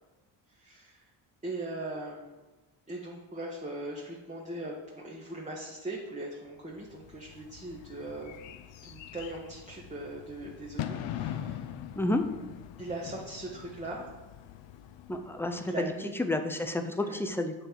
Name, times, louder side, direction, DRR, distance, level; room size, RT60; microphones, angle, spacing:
voice 1, 0.5-1.1 1.4-2.4 2.9-11.7 12.8-14.1 15.6-16.1 17.0-17.2, right 2 dB, 15° right, -3 dB, 1.1 m, -40 dB
Bird / Fireworks, 6.8-16.0, left 10 dB, 70° left, 0.6 m, -42 dB
voice 2, 12.0-12.3 15.1-15.7 16.3-17.5, left 1 dB, 5° left, 7 dB, 0.4 m, -30 dB
7.7 x 3.2 x 4.6 m, 1.2 s
cardioid pair, 80°, 47 cm